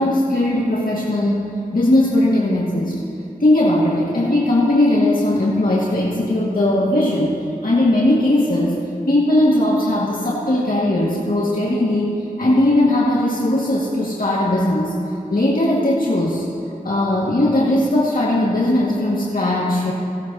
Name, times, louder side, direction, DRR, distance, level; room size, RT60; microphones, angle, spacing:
voice 1, 0.0-3.0 3.4-8.8 9.1-14.9 15.3-16.4 16.8-19.9, left 1 dB, 65° left, -6 dB, 1.9 m, -18 dB
17.0 x 17.0 x 2.8 m, 2.8 s
wide cardioid pair, 55°, 16 cm